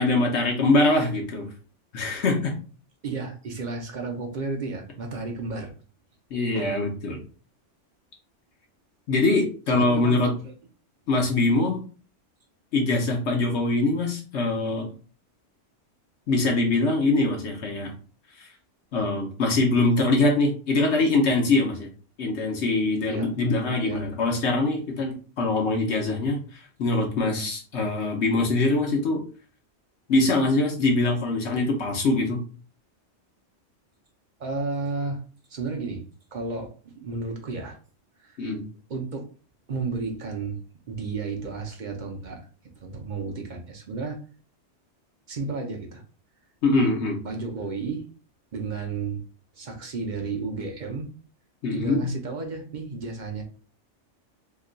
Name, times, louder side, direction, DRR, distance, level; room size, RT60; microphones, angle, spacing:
voice 1, 0.0-1.5 1.9-2.6 6.3-7.2 9.1-10.3 11.1-11.8 12.7-14.9 16.3-17.9 18.4-18.5 18.9-21.9 22.2-29.2 30.1-32.4 38.4-38.6 46.6-47.2 51.6-52.1, left 2 dB, 70° left, 1 dB, 1.0 m, -23 dB
voice 2, 3.0-5.7 6.5-6.7 9.7-10.5 23.1-23.3 23.8-24.1 34.4-35.2 35.5-36.0 36.3-37.8 38.2-38.4 38.9-39.2 39.7-40.6 40.9-42.5 42.8-44.2 45.3-46.0 47.2-48.0 48.5-49.2 49.5-51.1 51.7-53.4, right 4 dB, 50° right, 2 dB, 0.6 m, -32 dB
2.9 x 2.2 x 3.8 m, 0.38 s
omnidirectional pair, 1.2 m